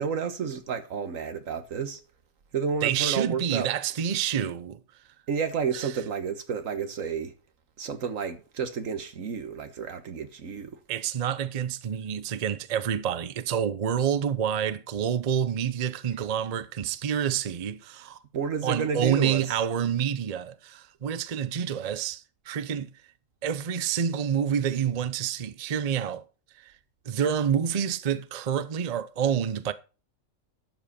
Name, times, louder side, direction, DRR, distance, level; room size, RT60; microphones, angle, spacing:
voice 1, 0.0-2.0 2.5-3.7 5.3-7.3 7.8-10.8 18.3-19.5, right 6 dB, 80° right, 1.6 m, -31 dB
voice 2, 2.8-4.8 5.7-6.0 10.9-18.2 18.6-22.9 23.4-26.3 26.6-26.7 27.1-29.7, right 8 dB, 40° right, 0.6 m, -28 dB
12.0 x 7.5 x 4.2 m
omnidirectional pair, 1.4 m